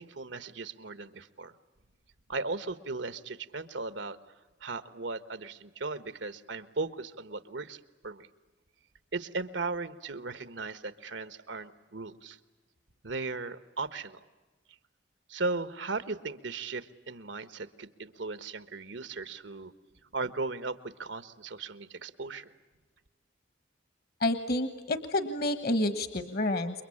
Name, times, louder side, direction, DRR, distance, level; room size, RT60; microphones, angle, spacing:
voice 1, 0.0-1.5 2.3-4.2 4.6-8.3 9.1-12.4 13.0-14.2 15.3-19.7 20.1-22.5, right 3 dB, 85° right, 13 dB, 1.3 m, -37 dB
voice 2, 24.2-26.8, left 1 dB, 55° left, 11 dB, 1.3 m, -29 dB
29.0 x 23.5 x 8.7 m, 1.3 s
head